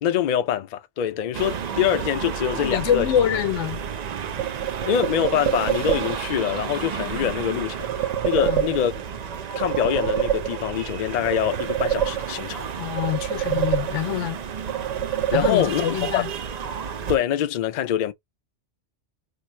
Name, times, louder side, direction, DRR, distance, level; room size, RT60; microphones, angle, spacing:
voice 1, 0.0-3.1 4.8-9.0 9.6-12.7 15.3-15.8 16.1-16.2 17.1-18.1, left 9 dB, 60° left, 0.5 m, -24 dB
sound 1, 1.3-17.2, right 7 dB, 65° right, 0.4 m, -32 dB
voice 2, 2.5-3.8 7.2-7.3 8.4-8.7 12.8-14.4 15.3-16.3, left 10 dB, 85° left, 0.9 m, -25 dB
sound 2, 4.4-6.4 7.8-9.2 9.5-10.9 11.2-12.6 13.0-14.3 14.7-16.0, right 11 dB, 90° right, 0.9 m, -26 dB
2.8 x 2.3 x 4.2 m
omnidirectional pair, 1.2 m